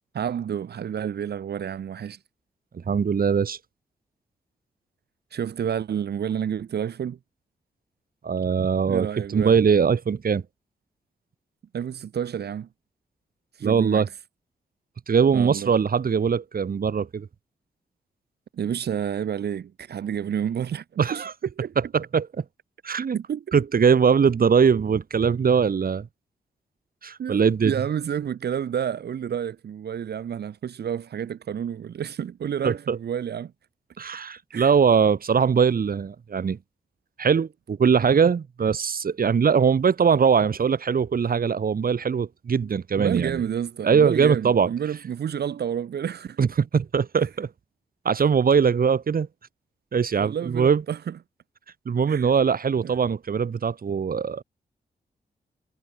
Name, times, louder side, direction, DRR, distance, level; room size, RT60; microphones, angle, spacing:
voice 1, 0.1-2.2 5.3-7.2 8.9-9.5 11.7-12.7 13.6-14.1 15.3-15.7 18.5-21.2 21.6-21.7 23.1-23.6 27.2-33.5 34.5-34.7 43.0-46.5 50.2-51.2 52.1-52.3 52.8-53.0, right 8 dB, 80° right, 5.6 m, -30 dB
voice 2, 2.7-3.6 8.2-9.1 9.3-10.4 13.6-14.1 15.1-17.3 21.0-21.3 21.9-22.3 22.8-23.2 23.5-26.1 27.0-27.7 32.6-33.0 34.0-36.6 37.2-43.4 43.8-44.7 46.4-47.5 48.0-49.3 49.9-50.8 51.8-54.4, right 6 dB, 60° right, 6.6 m, -21 dB
cardioid pair, 70°, 17 cm